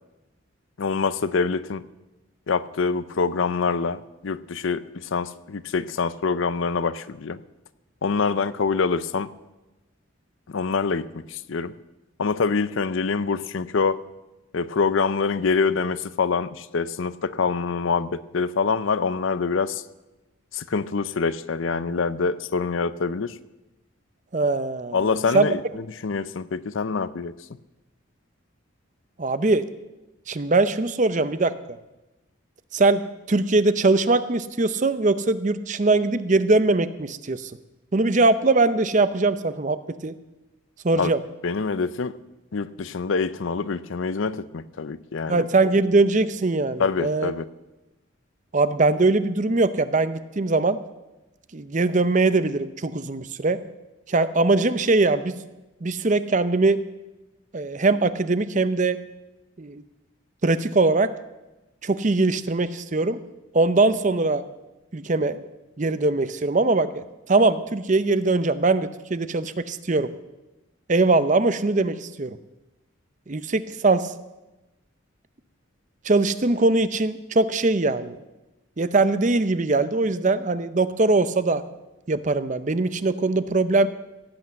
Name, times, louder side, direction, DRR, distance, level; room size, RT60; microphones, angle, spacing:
voice 1, 0.8-1.9 2.5-7.4 8.0-9.3 10.5-11.7 12.2-14.0 14.5-19.8 20.5-23.4 24.9-27.3 40.9-41.1 41.4-42.2 42.5-45.4 46.8-47.4, left 4 dB, 70° left, 15 dB, 0.6 m, -25 dB
voice 2, 24.3-25.1 25.3-25.5 29.2-29.7 30.3-31.8 32.7-33.0 33.3-37.5 37.9-39.8 40.0-40.1 40.8-41.2 45.3-47.3 48.5-50.8 51.5-53.6 54.1-55.3 55.8-56.8 57.5-59.0 59.6-59.8 60.4-61.1 61.8-63.2 63.5-64.4 64.9-65.4 65.8-67.0 67.3-70.1 70.9-72.4 73.3-74.1 76.0-78.2 78.8-81.6 82.1-83.9, right 3 dB, 35° right, 13 dB, 0.6 m, -21 dB
16.5 x 8.3 x 7.6 m, 1.0 s
head